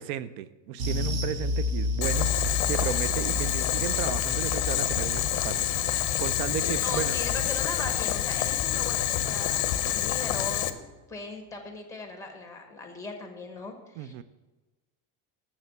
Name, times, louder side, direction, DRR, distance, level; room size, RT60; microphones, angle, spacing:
voice 1, 0.0-7.2 14.0-14.2, right 10 dB, 85° right, 15 dB, 0.6 m, -34 dB
sound 1, 0.8-9.5 9.7-10.0 10.4-10.5, left 2 dB, 50° right, 0.9 m, -33 dB
Boiling, 2.0-10.7, left 12 dB, 45° left, 0.6 m, -27 dB
voice 2, 6.8-10.7 11.1-14.2, left 3 dB, 5° left, 4 dB, 1.0 m, -38 dB
7.3 x 6.6 x 6.9 m, 1.2 s
cardioid pair, 170°, 45 cm